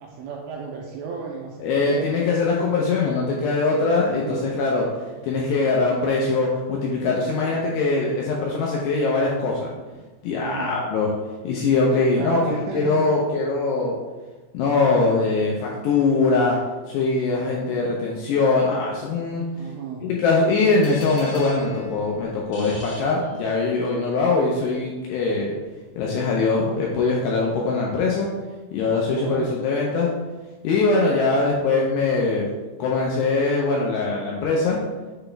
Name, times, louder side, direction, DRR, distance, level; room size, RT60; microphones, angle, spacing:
voice 1, 0.0-2.3 4.1-4.5 10.4-10.8 12.2-13.1 19.5-20.1 28.8-29.6, right 5 dB, 85° right, 0 dB, 2.5 m, -34 dB
voice 2, 1.6-4.9 5.2-9.7 10.2-11.1 11.4-14.0 14.5-16.6 16.9-19.4 20.0-25.5 26.0-28.3 28.7-30.1 30.6-32.5 32.8-34.8, left 3 dB, 80° left, -3 dB, 2.5 m, -22 dB
sound 1, 20.8-23.8, left 2 dB, 50° left, 2.1 m, -42 dB
6.9 x 4.1 x 3.3 m, 1.3 s
omnidirectional pair, 5.5 m